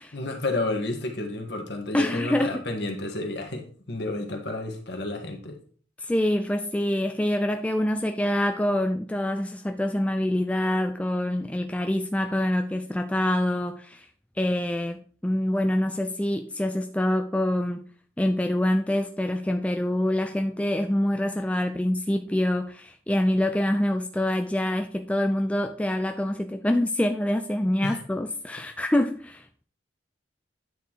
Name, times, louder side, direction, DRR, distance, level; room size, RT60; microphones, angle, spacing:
voice 1, 0.1-5.6 27.8-28.0, left 2 dB, 60° left, 1.6 m, -31 dB
voice 2, 1.9-2.7 6.0-14.1 14.4-17.9 18.2-29.6, left 1 dB, 5° left, 0.3 m, -26 dB
9.4 x 4.1 x 4.6 m
head